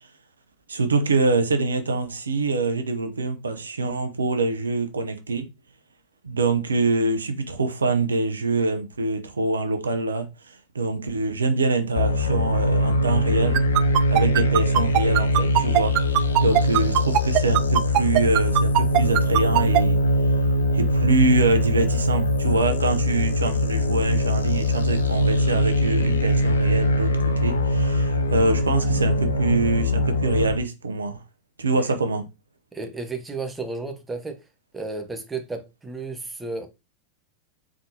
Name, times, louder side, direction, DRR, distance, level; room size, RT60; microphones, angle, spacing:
voice 1, 0.7-5.4 6.2-13.6 14.1-20.0 20.7-31.2 31.6-32.2, right 3 dB, 75° right, 0.7 m, -25 dB
sound 1, 12.0-30.5, left 1 dB, 75° left, 0.6 m, -22 dB
sound 2, 13.5-19.8, right 13 dB, 40° right, 0.4 m, -19 dB
voice 2, 32.7-34.4 34.7-36.7, right 3 dB, 10° right, 0.8 m, -33 dB
3.7 x 3.6 x 2.7 m
figure-of-eight pair, 90°, 0 cm